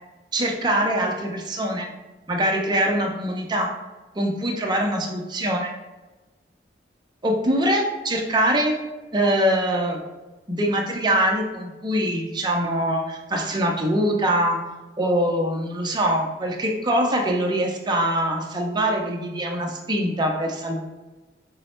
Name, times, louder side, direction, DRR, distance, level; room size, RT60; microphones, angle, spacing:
voice 1, 0.3-1.9 2.3-3.7 4.2-5.7 7.2-8.8 9.1-10.0 10.5-14.6 15.0-20.8, right 1 dB, 25° right, 1 dB, 0.6 m, -23 dB
5.2 x 2.1 x 4.3 m, 1.1 s
head